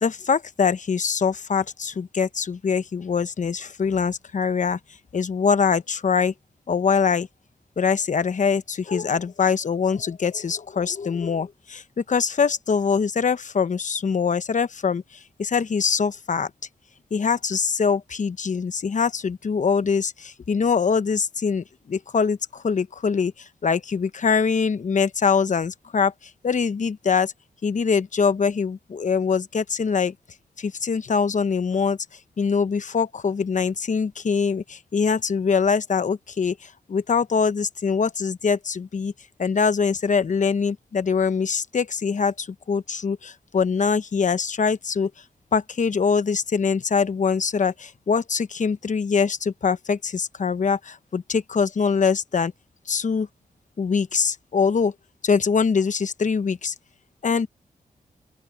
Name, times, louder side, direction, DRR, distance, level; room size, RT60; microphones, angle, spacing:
voice 1, 0.0-4.8 5.1-6.3 6.7-7.3 7.8-16.5 17.1-27.3 27.6-30.1 30.6-32.0 32.4-39.1 39.4-45.1 45.5-52.5 52.9-53.3 53.8-54.9 55.2-56.7 57.2-57.5, left 5 dB, 55° left, 1.0 m, -23 dB
open air
cardioid pair, 60°, 15 cm